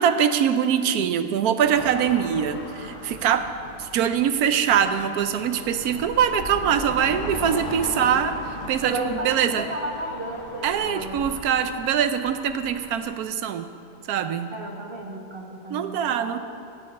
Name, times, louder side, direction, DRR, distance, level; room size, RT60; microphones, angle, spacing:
voice 1, 0.0-3.5 3.8-8.3 8.7-9.7 10.6-13.7 14.1-14.6 15.7-16.4, right 8 dB, 70° right, 10 dB, 1.0 m, -23 dB
sound 1, 1.6-13.1, left 2 dB, 35° left, 1.2 m, -38 dB
voice 2, 7.8-8.2 8.8-11.2 14.5-16.4, right 2 dB, 40° right, 1 dB, 1.2 m, -33 dB
13.5 x 5.5 x 8.3 m, 2.5 s
omnidirectional pair, 1.8 m